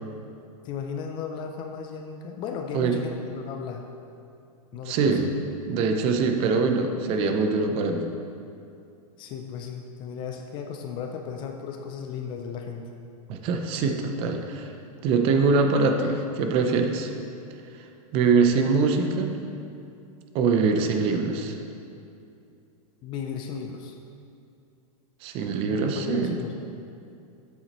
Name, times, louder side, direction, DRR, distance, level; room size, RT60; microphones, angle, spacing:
voice 1, 0.6-3.9 4.7-5.2 9.2-12.9 23.0-24.0 25.7-26.6, left 6 dB, 25° left, 4 dB, 0.3 m, -35 dB
voice 2, 4.9-5.3 5.7-8.1 13.3-14.7 15.0-17.1 18.1-19.4 20.3-21.6 25.2-26.4, right 4 dB, 30° right, 5 dB, 0.5 m, -23 dB
8.1 x 7.1 x 3.0 m, 2.6 s
supercardioid pair, 150°, 19 cm